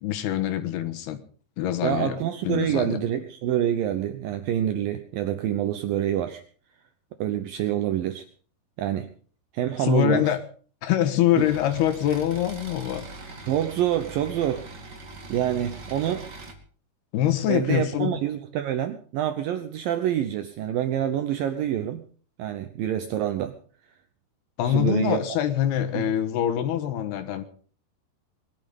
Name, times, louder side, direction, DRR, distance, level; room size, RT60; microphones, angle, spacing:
voice 1, 0.0-1.2 1.6-2.2 2.4-3.0 9.8-10.4 10.8-13.1 17.1-18.2 24.6-27.4, left 11 dB, 75° left, 9 dB, 3.3 m, -24 dB
voice 2, 1.8-6.4 7.2-8.2 8.8-9.1 9.5-10.4 13.5-14.7 15.3-16.3 17.5-22.0 22.4-23.6 24.6-25.2 25.9-26.1, right 11 dB, 70° right, 9 dB, 2.4 m, -26 dB
sound 1, 11.4-16.5, right 3 dB, 35° right, 2.0 m, -41 dB
20.5 x 12.0 x 5.4 m, 0.44 s
omnidirectional pair, 4.7 m